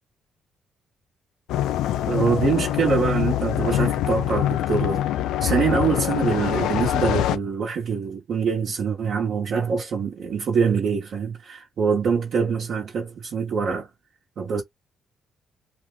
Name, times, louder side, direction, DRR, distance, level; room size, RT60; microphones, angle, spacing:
sound 1, 1.5-7.4, left 12 dB, 90° left, 0.4 m, -24 dB
voice 1, 2.1-5.0 5.4-13.9 14.4-14.6, right 6 dB, 60° right, 1.1 m, -24 dB
2.9 x 2.3 x 3.7 m
cardioid pair, 90°, 0 cm